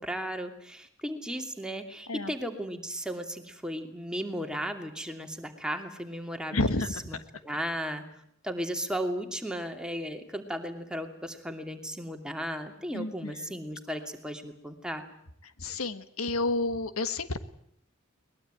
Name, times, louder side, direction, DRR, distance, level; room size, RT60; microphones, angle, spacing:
voice 1, 0.0-6.8 7.1-7.2 7.4-8.0 8.4-15.0, equal, 5° right, 4 dB, 2.7 m, -35 dB
voice 2, 6.5-7.2 12.9-13.6 15.6-17.4, left 2 dB, 85° left, 11 dB, 1.6 m, -30 dB
22.5 x 21.0 x 9.1 m, 0.70 s
head